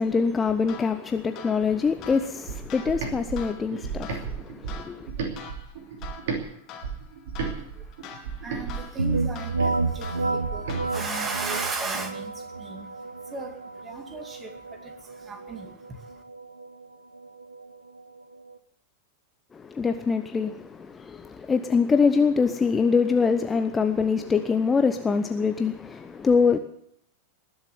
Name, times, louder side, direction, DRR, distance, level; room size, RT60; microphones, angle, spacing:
voice 1, 0.0-5.1 19.5-26.6, left 5 dB, 15° left, 0.9 m, -24 dB
sound 1, 0.7-11.3, left 7 dB, 35° left, 2.6 m, -45 dB
sound 2, 2.5-6.4 6.8-10.8, right 5 dB, 55° right, 2.9 m, -34 dB
voice 2, 7.6-16.2, right 4 dB, 20° right, 2.4 m, -37 dB
sound 3, 9.0-18.6, right 3 dB, 80° right, 0.8 m, -31 dB
20.0 x 7.4 x 9.3 m
figure-of-eight pair, 90°, 0 cm